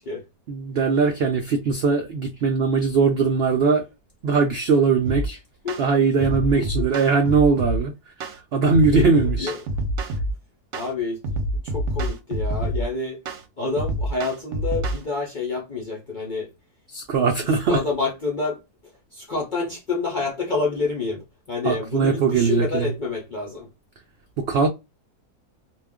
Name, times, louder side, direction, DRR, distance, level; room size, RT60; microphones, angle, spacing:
voice 1, 0.5-3.8 4.2-5.4 5.8-7.9 8.3-9.5 16.9-17.8 21.6-22.9 24.4-24.7, right 4 dB, 80° right, 0.5 m, -20 dB
sound 1, 5.0-5.3 5.7-5.9 6.2-7.8 8.2-8.4 8.7-10.3 10.7-10.9 11.2-12.8 13.3-13.4 13.8-15.0, right 1 dB, 65° right, 0.8 m, -26 dB
voice 2, 10.7-13.2 13.6-16.5 17.4-23.7, left 3 dB, 55° left, 0.5 m, -28 dB
2.3 x 2.2 x 3.5 m
omnidirectional pair, 1.6 m